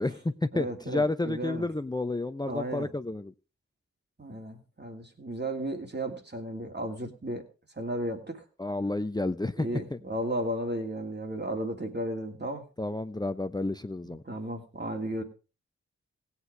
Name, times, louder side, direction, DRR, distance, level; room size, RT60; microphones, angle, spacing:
voice 1, 0.0-3.3 8.6-10.0 12.8-14.2, left 2 dB, 15° left, 11 dB, 0.7 m, -31 dB
voice 2, 0.5-1.7 2.5-2.9 4.2-7.4 7.8-8.4 9.6-12.6 14.0-15.2, right 1 dB, 35° right, 4 dB, 2.9 m, -34 dB
17.0 x 8.4 x 4.7 m, 0.33 s
cardioid pair, 40°, 29 cm